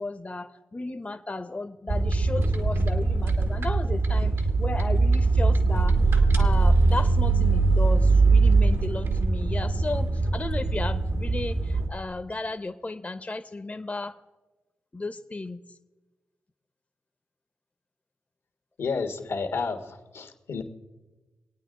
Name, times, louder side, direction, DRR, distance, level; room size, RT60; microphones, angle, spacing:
voice 1, 0.0-14.2 14.9-15.6, left 2 dB, 30° left, 8 dB, 0.8 m, -34 dB
sound 1, 1.9-11.9, right 3 dB, 70° right, 1.5 m, -22 dB
voice 2, 18.8-20.6, left 4 dB, 80° left, 5 dB, 1.4 m, -31 dB
23.5 x 9.0 x 3.8 m, 1.1 s
supercardioid pair, 40°, 5 cm